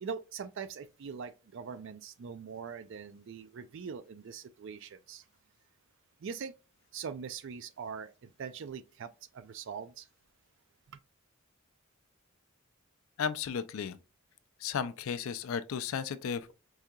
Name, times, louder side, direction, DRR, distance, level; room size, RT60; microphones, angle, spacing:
voice 1, 0.0-5.2 6.2-6.5 6.9-10.1, right 6 dB, 60° right, 0.4 m, -42 dB
voice 2, 13.2-14.0 14.6-16.5, left 7 dB, 75° left, 0.4 m, -34 dB
4.7 x 2.8 x 2.3 m
head